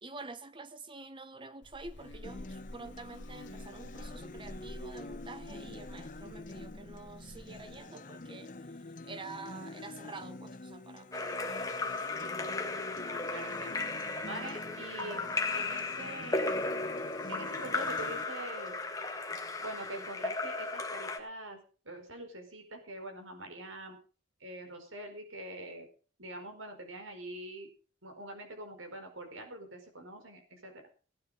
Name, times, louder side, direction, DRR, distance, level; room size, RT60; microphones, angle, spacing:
voice 1, 0.0-8.5 9.0-11.8, right 3 dB, 25° right, 0.8 m, -47 dB
Buzz, 1.6-7.8, left 1 dB, 65° left, 1.4 m, -49 dB
Acoustic guitar, 2.2-18.2, left 2 dB, 40° left, 0.9 m, -47 dB
Splash splatter / Drip / Trickle dribble, 11.1-21.2, left 3 dB, 15° left, 1.6 m, -35 dB
voice 2, 13.0-13.8 14.2-16.7 17.3-18.7 19.6-21.6 21.8-24.0 24.4-25.9 26.2-27.7 28.0-30.9, right 1 dB, 85° right, 4.7 m, -44 dB
18.0 x 9.6 x 5.2 m
head